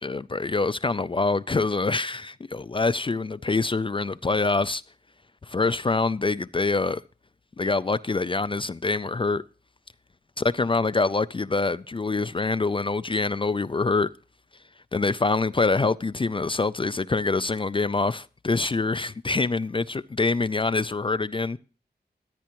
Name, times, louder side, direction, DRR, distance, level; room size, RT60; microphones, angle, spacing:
voice 1, 0.0-4.8 5.4-7.0 7.6-9.4 10.4-14.1 14.9-21.6, left 3 dB, 30° left, 0.4 m, -25 dB
13.5 x 9.3 x 3.0 m
wide cardioid pair, 90°, 18 cm